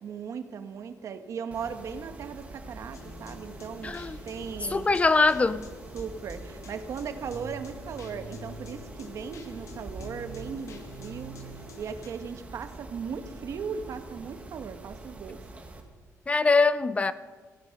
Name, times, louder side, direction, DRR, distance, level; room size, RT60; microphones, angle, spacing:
voice 1, 0.0-5.0 5.9-11.3 11.8-15.4, right 6 dB, 60° right, 1.1 m, -37 dB
Mechanisms, 1.5-15.8, right 2 dB, 20° right, 1.6 m, -45 dB
sound 1, 2.9-12.1, left 2 dB, 60° left, 1.7 m, -47 dB
voice 2, 3.8-4.2 4.7-5.6 16.3-17.1, left 3 dB, 20° left, 0.4 m, -22 dB
16.0 x 12.0 x 5.8 m
cardioid pair, 140°, 6 cm